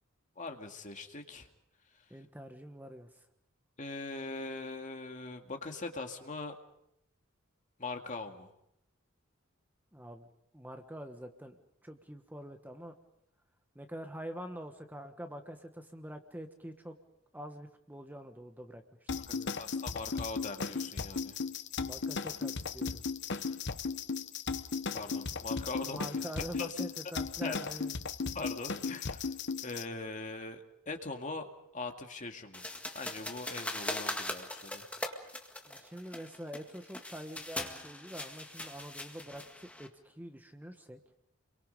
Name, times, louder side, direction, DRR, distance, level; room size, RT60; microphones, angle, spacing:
voice 1, 0.4-1.5 3.8-6.6 7.8-8.5 19.3-21.4 24.9-26.1 26.6-26.7 27.4-27.6 28.3-29.3 29.6-31.5 31.7-32.7 32.9-34.8, left 3 dB, 40° left, 4 dB, 2.2 m, -41 dB
voice 2, 2.1-3.3 9.9-10.3 10.5-12.9 13.7-17.0 17.3-19.5 21.8-23.0 25.8-27.9 35.6-41.0, equal, 10° right, 6 dB, 1.3 m, -45 dB
sound 1, 19.1-29.8, left 5 dB, 60° left, 0.9 m, -36 dB
sound 2, 32.5-39.9, left 1 dB, 5° left, 1.9 m, -41 dB
30.0 x 23.5 x 5.3 m, 0.76 s
head